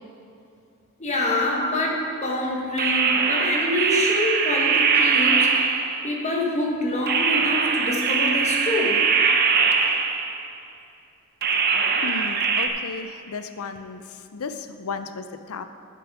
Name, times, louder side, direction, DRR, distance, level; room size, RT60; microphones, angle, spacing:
voice 1, 1.0-5.8 6.0-9.1, left 1 dB, 35° left, -1 dB, 1.4 m, -26 dB
sound 1, 2.8-6.2 7.1-10.5 11.4-12.7, right 5 dB, 45° right, 0.6 m, -21 dB
voice 2, 12.0-14.0 14.3-15.6, left 4 dB, 90° left, 10 dB, 0.5 m, -34 dB
10.0 x 6.7 x 4.9 m, 2.5 s
head